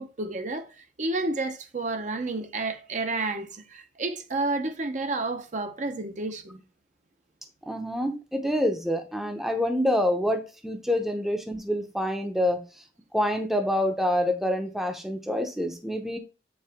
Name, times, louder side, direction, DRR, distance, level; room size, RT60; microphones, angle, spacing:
voice 1, 0.0-6.6, right 2 dB, 45° right, 0.7 m, -31 dB
voice 2, 7.6-12.6 13.1-16.2, left 1 dB, ahead, 0.7 m, -27 dB
7.3 x 4.7 x 3.5 m
head